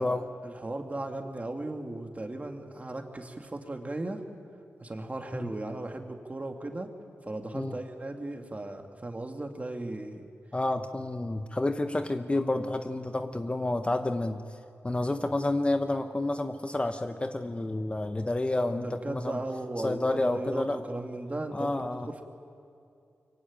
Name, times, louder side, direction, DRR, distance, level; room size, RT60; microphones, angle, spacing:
voice 1, 0.4-4.2 4.8-6.9 7.3-10.3 18.8-21.7 22.1-22.2, right 2 dB, 30° right, 4 dB, 2.6 m, -36 dB
voice 2, 10.5-14.4 14.8-19.4 19.8-20.8 21.5-22.1, left 2 dB, 20° left, 7 dB, 1.1 m, -29 dB
24.0 x 23.0 x 9.0 m, 2.5 s
wide cardioid pair, 75°, 5 cm